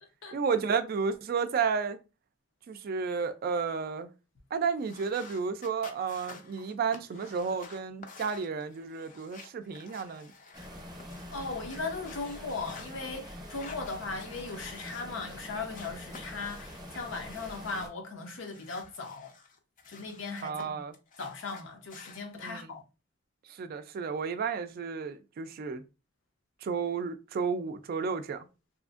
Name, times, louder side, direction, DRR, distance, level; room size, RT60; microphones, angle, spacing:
voice 1, 0.3-2.0 2.7-4.1 4.5-10.3 20.4-20.9 22.4-22.7 23.5-25.8 26.6-28.5, right 5 dB, 50° right, 0.3 m, -32 dB
sound 1, 4.8-10.7 11.0-12.9 13.4-15.4 15.7-17.9 18.2-20.6 20.9-22.2, left 4 dB, 45° left, 0.4 m, -51 dB
sound 2, 10.5-17.9, equal, 25° right, 0.7 m, -45 dB
voice 2, 11.3-19.3 19.9-20.8 21.2-22.8, left 3 dB, 80° left, 0.7 m, -38 dB
2.8 x 2.5 x 2.3 m
head